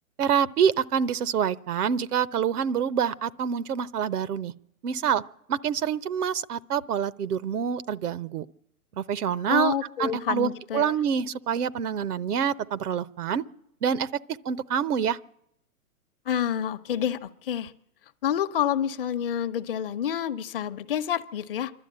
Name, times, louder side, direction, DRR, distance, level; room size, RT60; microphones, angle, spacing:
voice 1, 0.2-4.5 4.8-5.2 5.5-8.5 9.0-9.7 10.0-13.4 13.8-14.1 14.4-15.2, right 8 dB, 90° right, 18 dB, 0.9 m, -26 dB
voice 2, 9.5-10.9 16.3-17.7 18.2-21.7, left 9 dB, 40° left, 10 dB, 0.7 m, -28 dB
26.0 x 12.0 x 8.7 m, 0.79 s
hypercardioid pair, 160°, 44 cm